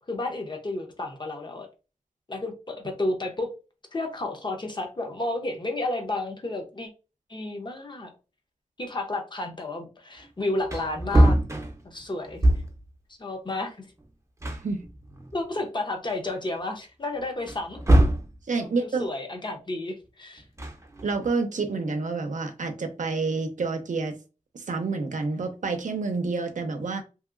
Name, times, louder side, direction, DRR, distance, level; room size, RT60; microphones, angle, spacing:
voice 1, 0.1-1.7 2.3-3.5 3.9-6.9 7.3-8.1 8.8-11.4 11.8-12.5 13.2-13.9 15.3-17.8 18.6-20.4, left 2 dB, 35° left, 0.7 m, -31 dB
Wood, 10.2-10.3 10.6-12.9 14.0-14.1 14.4-15.6 16.1-16.2 17.4-18.4 20.4-21.3, right 1 dB, 25° right, 0.6 m, -23 dB
voice 2, 18.5-19.1 21.0-24.1 24.5-27.0, right 4 dB, 80° right, 0.6 m, -28 dB
2.8 x 2.8 x 2.4 m
wide cardioid pair, 80°, 13 cm